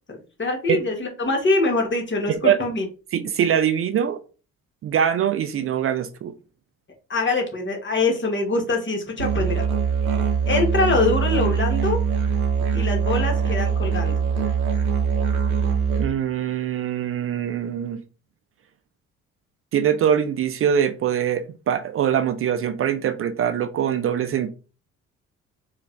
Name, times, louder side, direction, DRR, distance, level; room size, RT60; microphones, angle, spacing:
voice 1, 0.1-2.8 7.1-9.6 10.5-12.0 12.7-14.1, left 3 dB, 25° left, 1.5 m, -24 dB
voice 2, 3.1-4.2 4.8-6.3 12.6-12.7 16.0-18.0 19.7-24.5, right 9 dB, 30° right, 0.5 m, -23 dB
Musical instrument, 9.2-16.0, right 6 dB, 85° right, 0.7 m, -22 dB
4.4 x 2.4 x 3.3 m
figure-of-eight pair, 45°, 42 cm